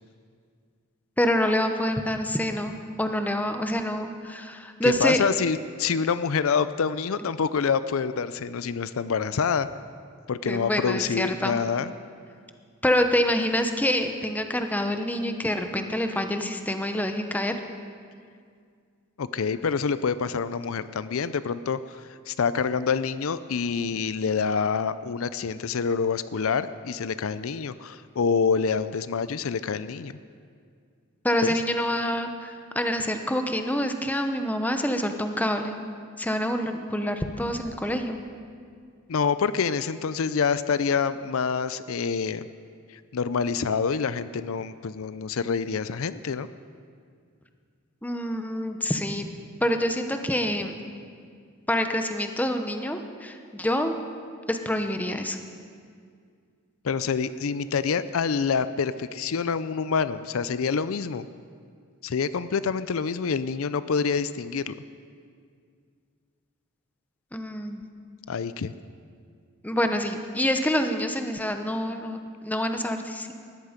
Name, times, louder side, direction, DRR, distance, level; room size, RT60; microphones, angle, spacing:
voice 1, 1.2-5.2 10.4-11.6 12.8-17.6 31.2-35.8 36.2-38.2 48.0-49.3 49.6-50.8 51.7-54.0 54.5-55.4 67.3-67.8 69.6-73.3, left 1 dB, 10° left, 6 dB, 0.9 m, -26 dB
voice 2, 4.8-9.7 10.3-11.9 19.2-30.1 31.4-31.6 39.1-42.4 43.1-46.5 56.8-61.3 62.0-64.7 68.3-68.7, left 5 dB, 75° left, 14 dB, 0.5 m, -26 dB
19.0 x 14.0 x 5.1 m, 2.2 s
head